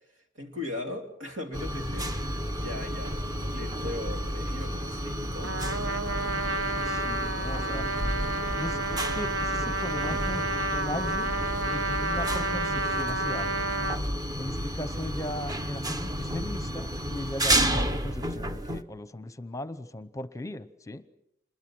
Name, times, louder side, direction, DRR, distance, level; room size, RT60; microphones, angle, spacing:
voice 1, 0.4-2.1 2.5-5.8, left 2 dB, 90° right, 3 dB, 3.3 m, -38 dB
sound 1, 1.5-18.8, equal, 20° right, 1.0 m, -31 dB
Trumpet, 5.4-14.0, right 2 dB, 75° right, 1.2 m, -30 dB
voice 2, 6.9-7.9 8.6-11.3 11.7-13.6 14.4-21.0, left 1 dB, 15° left, 13 dB, 0.8 m, -38 dB
27.0 x 21.5 x 6.3 m, 0.81 s
head